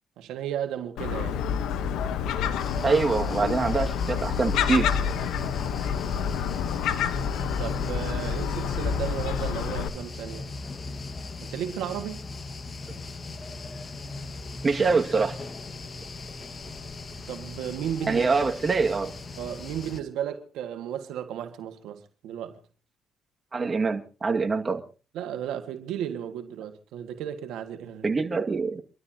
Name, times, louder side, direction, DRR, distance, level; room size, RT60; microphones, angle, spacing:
voice 1, 0.2-1.4 7.6-10.5 11.5-12.2 17.3-18.3 19.4-22.6 25.1-28.1, right 10 dB, 90° right, 1.9 m, -34 dB
Gull seagull, 1.0-9.9, left 7 dB, 85° left, 1.2 m, -28 dB
sound 1, 2.6-20.0, left 3 dB, 35° left, 1.7 m, -38 dB
voice 2, 2.8-4.9 14.6-15.4 18.1-19.1 23.5-24.8 28.0-28.8, right 4 dB, 35° right, 2.1 m, -24 dB
27.0 x 12.5 x 3.0 m
cardioid pair, 90°, 0 cm